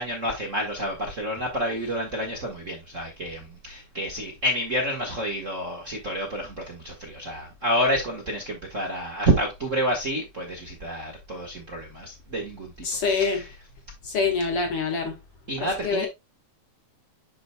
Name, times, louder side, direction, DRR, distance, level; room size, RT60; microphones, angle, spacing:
voice 1, 0.0-12.7 13.1-13.4 15.5-16.1, equal, 35° right, 1.4 m, -29 dB
voice 2, 12.8-13.4 14.0-15.2 15.6-16.1, left 4 dB, 55° left, 2.1 m, -25 dB
10.5 x 5.0 x 2.2 m
omnidirectional pair, 3.4 m